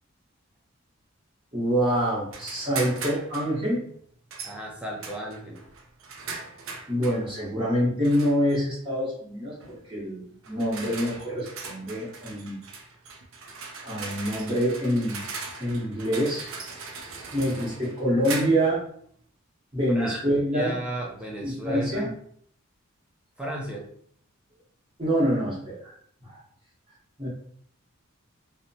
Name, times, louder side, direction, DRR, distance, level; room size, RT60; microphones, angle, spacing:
voice 1, 1.5-3.8 6.9-12.6 13.8-15.2 15.6-16.5 17.3-18.8 19.7-20.7 21.4-22.1 25.0-25.9 26.2-26.4 27.2-27.3, equal, 25° right, -6 dB, 0.9 m, -26 dB
sound 1, 2.3-3.5 4.3-4.6 5.0-7.2 8.0-8.6 9.6-9.8 10.4-18.8, right 4 dB, 70° right, 0.4 m, -39 dB
voice 2, 4.4-5.6 19.9-20.2 20.5-22.1 23.4-23.8, right 1 dB, 5° right, -2 dB, 0.5 m, -34 dB
2.7 x 2.1 x 2.6 m, 0.62 s
head